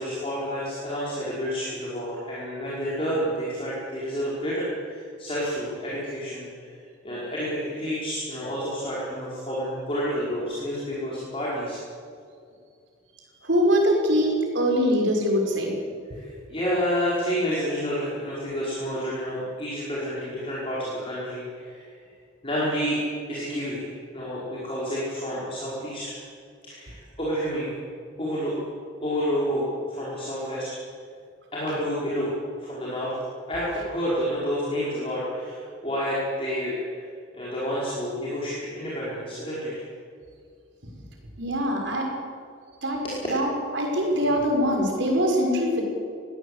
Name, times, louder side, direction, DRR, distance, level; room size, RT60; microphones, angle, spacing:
voice 1, 0.0-6.7 7.0-11.8 16.1-21.9 22.4-23.0 23.3-26.2 26.6-27.8 28.2-28.6 29.0-30.7 31.5-32.3 32.6-33.1 33.5-37.0 37.3-39.8 43.0-43.2, equal, 30° left, -7 dB, 5.2 m, -29 dB
voice 2, 13.4-15.7 41.4-42.1 42.8-43.0 43.3-45.8, equal, 60° right, 1 dB, 5.6 m, -23 dB
22.0 x 17.0 x 8.3 m, 2.2 s
head